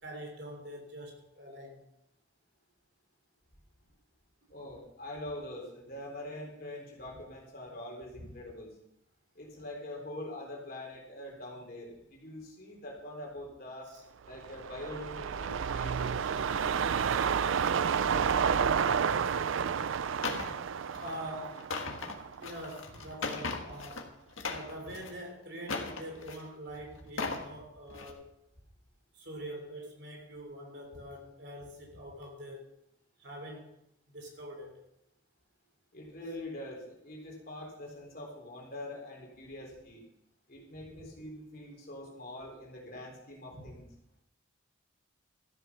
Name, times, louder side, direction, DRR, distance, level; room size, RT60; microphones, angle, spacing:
voice 1, 0.0-1.8 6.6-6.7 8.2-8.3 13.9-14.0 20.9-21.6 22.1-28.3 29.1-32.7 33.2-33.7 34.1-34.8, equal, 55° right, 2 dB, 3.2 m, -44 dB
voice 2, 4.5-8.7 9.3-13.9 14.3-16.4 35.9-40.0 40.5-43.9, left 1 dB, 50° left, 0 dB, 3.7 m, -44 dB
sound 1, 14.3-22.8 23.1-23.2, right 7 dB, 80° right, 0.4 m, -30 dB
sound 2, 20.2-20.5 20.9-21.2 21.5-24.0 24.3-25.1 25.6-26.5 27.0-27.5 27.9-28.1, left 4 dB, 85° left, 1.6 m, -37 dB
13.5 x 8.1 x 6.0 m, 0.82 s
head